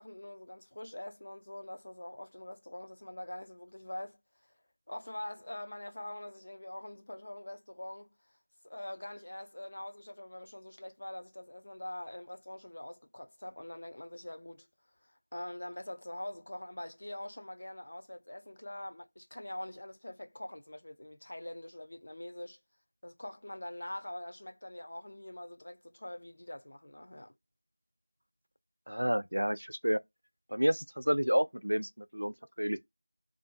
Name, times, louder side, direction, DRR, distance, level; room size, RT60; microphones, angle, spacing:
voice 1, 0.0-4.2 4.9-8.2 8.6-14.7 15.0-22.6 23.0-27.3, left 1 dB, 35° left, 0.5 m, -44 dB
voice 2, 28.9-30.0 30.5-32.8, equal, 85° right, 0.4 m, -30 dB
2.5 x 2.2 x 2.4 m
figure-of-eight pair, 175°, 0 cm